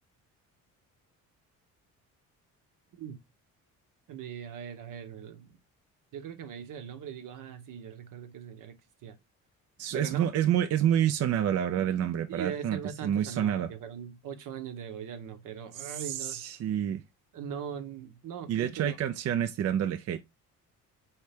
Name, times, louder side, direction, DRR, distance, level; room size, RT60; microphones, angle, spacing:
voice 1, 4.1-5.6 6.1-8.8 9.0-9.2 9.9-10.3 12.3-16.4 17.3-19.0, right 8 dB, 65° right, 0.9 m, -40 dB
voice 2, 9.8-13.7 15.8-17.0 18.5-20.2, right 10 dB, 45° right, 0.4 m, -28 dB
4.4 x 3.2 x 3.2 m
cardioid pair, 80°, 34 cm